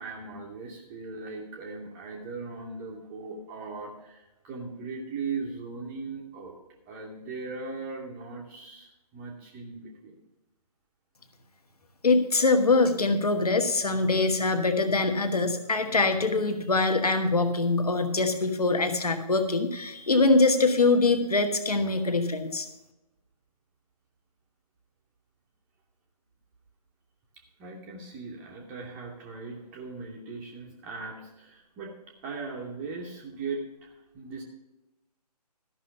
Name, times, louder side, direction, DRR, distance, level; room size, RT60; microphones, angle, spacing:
voice 1, 0.0-6.6 6.9-10.1 27.6-31.9 32.2-34.4, right 4 dB, 10° right, 0 dB, 0.6 m, -39 dB
voice 2, 12.0-22.7, left 3 dB, 65° left, 8 dB, 1.3 m, -23 dB
13.0 x 5.6 x 6.8 m, 0.94 s
figure-of-eight pair, 140°, 21 cm